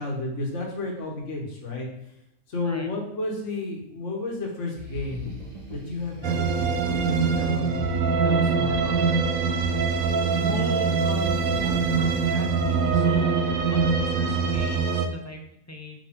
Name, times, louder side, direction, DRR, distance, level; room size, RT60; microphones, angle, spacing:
voice 1, 0.0-1.9 2.5-5.3 5.7-8.0 8.2-9.1, left 2 dB, 60° left, -1 dB, 1.7 m, -32 dB
sound 1, 4.8-14.7, left 2 dB, 30° right, 1.6 m, -39 dB
sound 2, 6.2-15.1, right 5 dB, 80° right, 1.1 m, -23 dB
voice 2, 10.4-13.4 13.7-16.0, equal, 20° left, 4 dB, 0.5 m, -38 dB
6.1 x 5.3 x 3.7 m, 0.82 s
omnidirectional pair, 1.4 m